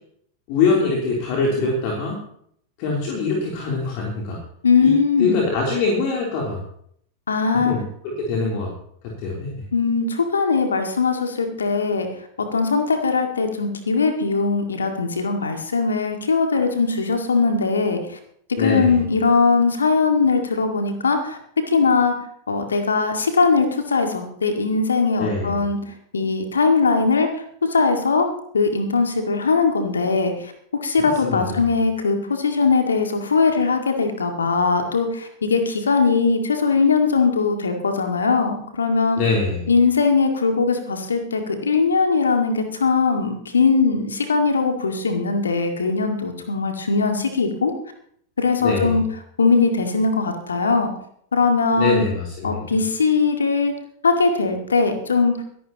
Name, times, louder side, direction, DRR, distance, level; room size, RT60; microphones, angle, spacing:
voice 1, 0.5-2.2 2.8-4.4 4.8-4.9 5.2-6.6 7.6-8.7 9.2-9.5 18.6-19.0 25.2-25.6 31.0-31.6 39.2-39.7 48.6-49.0 51.8-52.6, left 4 dB, 45° left, -2 dB, 3.3 m, -23 dB
voice 2, 4.6-5.4 7.3-7.7 9.7-12.1 12.4-18.2 18.6-21.4 21.7-22.1 22.5-27.3 27.7-28.3 28.5-39.2 39.7-47.7 48.4-49.0 49.4-50.9 51.3-52.0 52.4-53.7 54.0-55.3, left 4 dB, 70° left, 5 dB, 2.0 m, -20 dB
24.0 x 11.0 x 2.9 m, 0.65 s
figure-of-eight pair, 90°, 0 cm